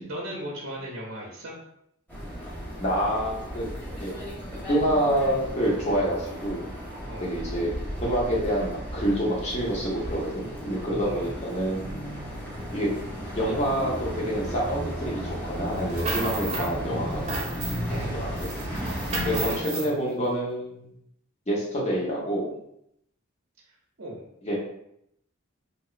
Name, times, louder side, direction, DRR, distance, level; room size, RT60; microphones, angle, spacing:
voice 1, 0.0-1.5 7.1-7.3 10.9-11.3 17.9-18.2 19.2-19.9 24.0-24.2, equal, 60° right, -3 dB, 0.7 m, -37 dB
sound 1, 2.1-19.6, equal, 10° left, 1.2 m, -34 dB
voice 2, 2.8-3.7 4.0-4.1 4.7-6.7 7.2-7.7 8.0-11.8 12.7-12.9 13.3-17.4 18.0-18.5 19.2-20.9 21.5-22.6 24.4-24.6, equal, 30° left, -4 dB, 1.0 m, -27 dB
sound 2, 15.7-16.7 17.1-18.0 18.4-19.9, right 2 dB, 30° right, 0.8 m, -33 dB
3.4 x 2.9 x 2.5 m, 0.76 s
head